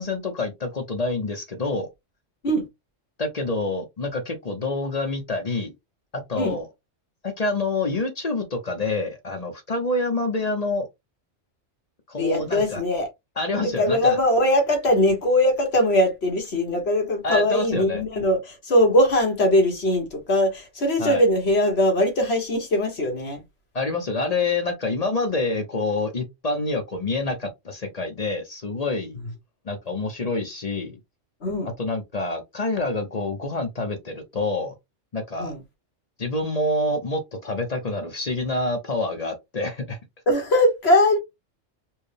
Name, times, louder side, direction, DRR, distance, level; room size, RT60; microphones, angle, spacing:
voice 1, 0.0-1.9 3.2-5.7 6.1-6.7 7.2-10.9 12.1-12.8 13.4-14.2 17.2-18.0 21.0-21.2 23.7-29.2 29.6-31.0 31.8-34.7 35.1-35.5 36.2-40.0, left 2 dB, 40° left, 0.7 m, -27 dB
voice 2, 12.2-13.1 13.6-23.4 31.4-31.7 35.4-35.6 40.3-41.2, left 1 dB, 55° left, 1.6 m, -21 dB
4.5 x 2.1 x 3.3 m
omnidirectional pair, 1.3 m